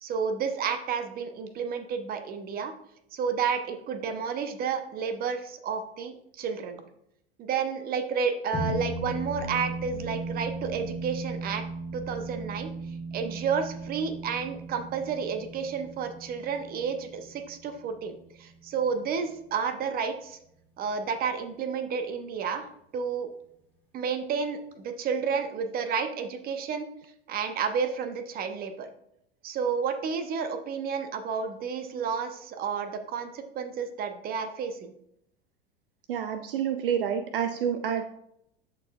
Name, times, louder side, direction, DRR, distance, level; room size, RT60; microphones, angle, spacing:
voice 1, 0.0-2.7 3.1-6.8 7.4-11.6 11.9-12.7 13.1-20.4 20.8-22.7 22.9-23.3 23.9-26.9 27.3-28.9 29.4-34.9, right 6 dB, 30° right, 8 dB, 0.9 m, -31 dB
sound 1, 8.5-19.2, right 2 dB, 10° left, 2.0 m, -37 dB
voice 2, 36.1-38.1, right 8 dB, 60° right, 9 dB, 0.5 m, -28 dB
13.0 x 4.5 x 2.4 m, 0.75 s
figure-of-eight pair, 80°, 31 cm